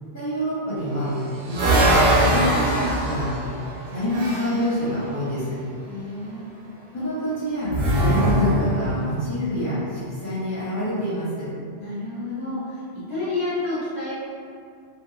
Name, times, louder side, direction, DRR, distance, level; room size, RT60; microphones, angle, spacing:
voice 1, 0.1-1.1 1.5-3.3 3.9-5.6 6.9-11.5, left 1 dB, 15° left, -12 dB, 0.7 m, -26 dB
sound 1, 0.8-4.7 7.7-9.1, right 1 dB, 65° right, 0.7 m, -21 dB
voice 2, 5.8-6.4 11.8-12.8 13.1-14.1, left 2 dB, 70° left, -14 dB, 1.3 m, -29 dB
2.9 x 2.2 x 2.3 m, 2.3 s
omnidirectional pair, 1.2 m